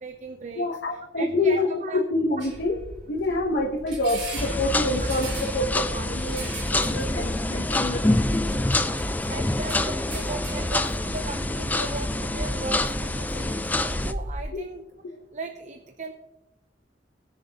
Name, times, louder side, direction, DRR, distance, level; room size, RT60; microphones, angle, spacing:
voice 1, 0.0-0.7 1.2-2.0 8.4-8.7 9.3-14.8 15.3-16.1, right 3 dB, 40° right, 5 dB, 0.7 m, -37 dB
voice 2, 0.5-2.7 3.1-8.3 15.1-15.2, left 2 dB, 60° left, -1 dB, 1.1 m, -27 dB
sound 1, 2.4-14.5, right 1 dB, 80° right, 3.7 m, -37 dB
sound 2, 4.4-14.1, left 2 dB, 10° left, 0.4 m, -26 dB
20.5 x 6.8 x 2.9 m, 0.98 s
head